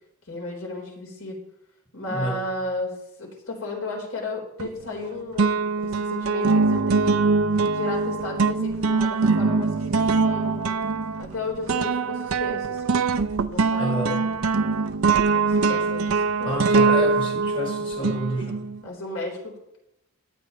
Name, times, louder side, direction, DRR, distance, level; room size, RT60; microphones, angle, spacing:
voice 1, 0.3-1.4 1.9-2.9 3.2-7.1 7.7-10.8 11.2-12.9 13.5-14.3 15.3-16.6 18.8-19.5, left 2 dB, 75° left, -1 dB, 4.0 m, -34 dB
voice 2, 2.1-2.5 13.8-14.3 16.4-18.6, right 1 dB, 25° left, 0 dB, 1.5 m, -29 dB
sound 1, 4.6-5.1 5.4-18.8, right 4 dB, 80° right, 0.6 m, -23 dB
17.5 x 11.0 x 3.2 m, 0.86 s
head